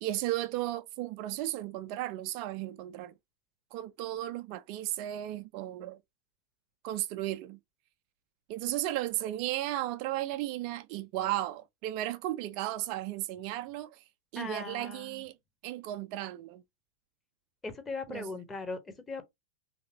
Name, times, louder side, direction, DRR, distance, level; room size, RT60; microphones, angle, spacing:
voice 1, 0.0-3.1 3.7-6.0 6.8-7.6 8.5-14.0 14.3-15.3 15.6-16.6 18.1-18.3, right 14 dB, 45° right, 0.3 m, -35 dB
voice 2, 14.3-15.3 17.6-19.2, left 3 dB, 15° left, 0.8 m, -39 dB
3.1 x 2.6 x 2.7 m
figure-of-eight pair, 90°, 0 cm